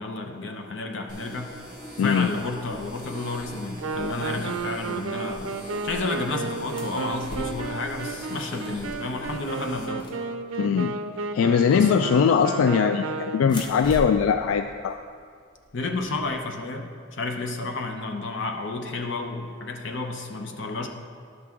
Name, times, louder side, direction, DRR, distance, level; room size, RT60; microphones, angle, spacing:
voice 1, 0.0-1.6 2.0-5.6 5.8-10.1 11.7-11.9 15.7-20.9, left 3 dB, 65° left, 4 dB, 0.8 m, -31 dB
sound 1, 1.1-9.9, right 1 dB, 40° left, 1.8 m, -42 dB
voice 2, 2.0-2.3 10.6-10.9 11.3-15.0, left 6 dB, 90° left, 8 dB, 0.3 m, -21 dB
Wind instrument woodwind instrument, 3.8-13.7, right 4 dB, 80° right, 0.5 m, -33 dB
sound 2, 6.8-7.8 8.9-9.1 9.3-10.8 12.3-12.8 13.4-16.5, equal, 25° left, 0.8 m, -40 dB
11.0 x 6.0 x 3.6 m, 2.1 s
head